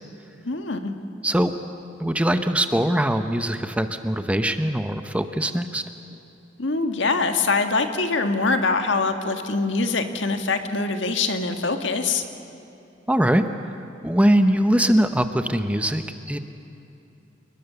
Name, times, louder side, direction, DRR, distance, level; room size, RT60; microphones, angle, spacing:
voice 1, 0.4-0.9 6.6-12.2, left 3 dB, 70° left, 6 dB, 1.6 m, -23 dB
voice 2, 2.0-5.8 13.1-13.5 14.0-16.4, right 1 dB, 5° right, 8 dB, 0.8 m, -21 dB
28.5 x 20.5 x 6.9 m, 2.8 s
head